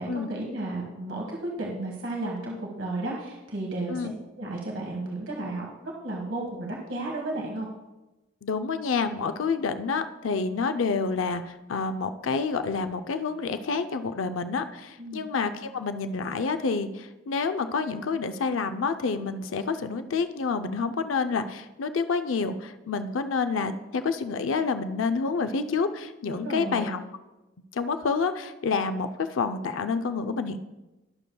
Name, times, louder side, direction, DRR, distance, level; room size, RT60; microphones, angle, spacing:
voice 1, 0.0-4.1 4.4-7.7 15.0-15.3 26.2-26.9, right 2 dB, 80° right, -1 dB, 1.5 m, -33 dB
voice 2, 8.4-27.0 27.7-30.6, left 4 dB, 90° left, 9 dB, 0.5 m, -28 dB
20.5 x 6.8 x 2.3 m, 1.1 s
head